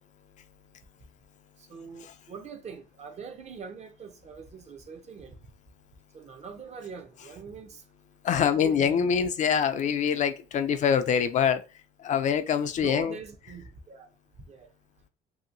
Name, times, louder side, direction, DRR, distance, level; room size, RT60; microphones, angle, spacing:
voice 1, 1.7-5.4 6.1-7.8 8.3-9.3 12.8-14.1 14.5-14.7, right 6 dB, 40° right, 0.6 m, -43 dB
voice 2, 8.2-11.6 12.0-13.2, left 7 dB, 45° left, 0.4 m, -25 dB
2.8 x 2.7 x 2.5 m
cardioid pair, 110°, 17 cm